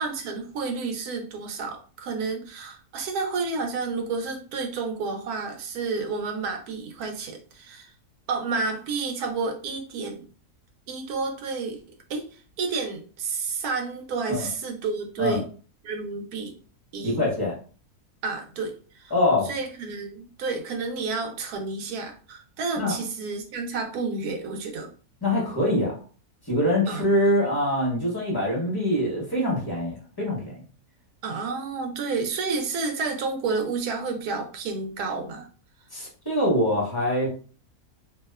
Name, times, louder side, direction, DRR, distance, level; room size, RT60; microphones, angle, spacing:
voice 1, 0.0-7.9 8.3-10.3 10.9-11.8 12.1-12.3 12.6-15.4 15.8-16.6 16.9-17.2 18.2-19.1 19.4-24.9 26.9-27.0 31.2-35.5, right 4 dB, 75° right, 4 dB, 1.0 m, -30 dB
voice 2, 17.0-17.5 19.1-19.5 22.8-23.0 25.2-26.0 26.5-30.5 35.9-37.3, left 1 dB, 35° left, -4 dB, 0.3 m, -24 dB
2.7 x 2.1 x 2.2 m, 0.39 s
omnidirectional pair, 1.7 m